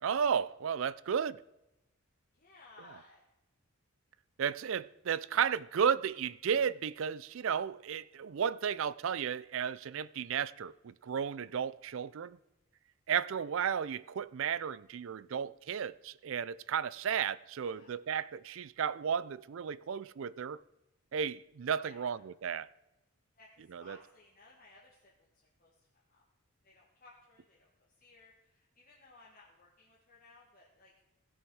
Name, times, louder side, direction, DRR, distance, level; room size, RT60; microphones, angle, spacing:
voice 1, 0.0-1.4 4.4-12.4 13.1-20.6 21.1-22.7 23.7-24.0, right 7 dB, 60° right, 0.4 m, -33 dB
voice 2, 2.3-3.2 17.6-18.0 21.8-22.2 23.4-25.3 25.6-26.2 26.6-27.7 27.9-30.9, left 3 dB, 40° left, 1.7 m, -60 dB
16.5 x 6.4 x 4.7 m
head